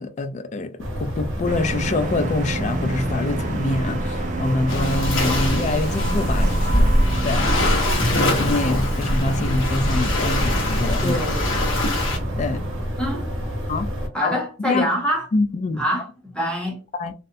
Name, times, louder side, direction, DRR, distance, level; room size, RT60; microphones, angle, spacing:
voice 1, 0.0-6.9 7.2-7.5 8.1-11.2 12.4-12.6 13.7-13.9 14.2-14.9 15.3-15.8 16.9-17.1, left 2 dB, 35° left, 0.3 m, -25 dB
sound 1, 0.8-14.1, equal, 80° right, 0.8 m, -29 dB
sound 2, 1.4-12.9, right 3 dB, 40° right, 0.4 m, -31 dB
Waves surf, 4.7-12.2, left 1 dB, 80° left, 1.0 m, -22 dB
voice 2, 11.0-11.8 13.0-13.3 14.1-15.3 15.8-16.8, equal, 5° left, 0.8 m, -25 dB
2.7 x 2.1 x 2.5 m
head